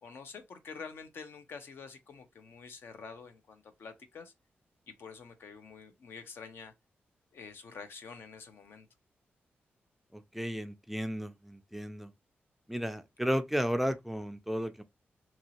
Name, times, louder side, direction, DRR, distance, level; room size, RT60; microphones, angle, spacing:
voice 1, 0.0-4.3 4.9-6.7 7.3-8.9, left 5 dB, 70° left, 0.7 m, -47 dB
voice 2, 10.1-12.1 12.7-14.8, equal, 5° right, 0.3 m, -33 dB
2.9 x 2.6 x 2.9 m
wide cardioid pair, 115°, 4 cm